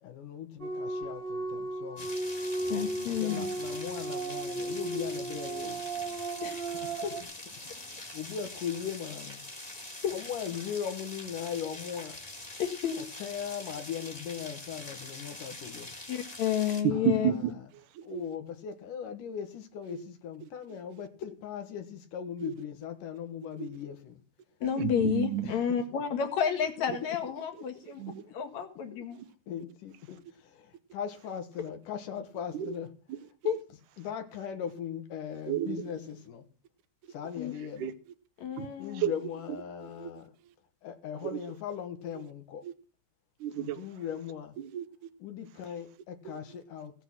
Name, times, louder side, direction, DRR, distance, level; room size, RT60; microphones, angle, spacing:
voice 1, 0.0-2.1 3.0-5.8 6.8-6.9 7.7-9.4 10.1-12.2 13.0-15.9 16.9-17.4 18.0-24.2 25.4-25.8 27.5-27.6 28.9-29.0 29.5-32.9 34.0-36.5 37.1-37.9 38.8-40.3 40.8-42.6 43.5-44.6 45.2-46.9, left 8 dB, 90° left, 3.1 m, -39 dB
sound 1, 0.6-7.2, right 2 dB, 55° right, 0.6 m, -35 dB
sound 2, 2.0-16.8, left 2 dB, 20° left, 1.2 m, -44 dB
voice 2, 2.7-3.4 6.4-6.6 7.0-7.1 10.0-10.1 12.6-13.0 16.1-17.3 24.6-28.0 28.3-29.2 33.4-33.6 37.4-37.5 38.4-39.0, left 8 dB, 65° left, 3.1 m, -30 dB
voice 3, 16.8-18.2 19.9-20.0 20.7-20.8 22.4-22.5 23.6-23.7 24.7-25.5 28.0-28.2 29.2-29.3 32.5-32.7 33.1-33.2 35.5-35.9 37.2-37.3 37.8-37.9 38.6-38.7 38.9-39.1 39.8-40.1 41.2-41.4 42.6-42.7 43.4-43.9 44.6-45.1 46.3-46.4, right 11 dB, 80° right, 2.2 m, -32 dB
16.0 x 7.9 x 6.1 m
omnidirectional pair, 3.6 m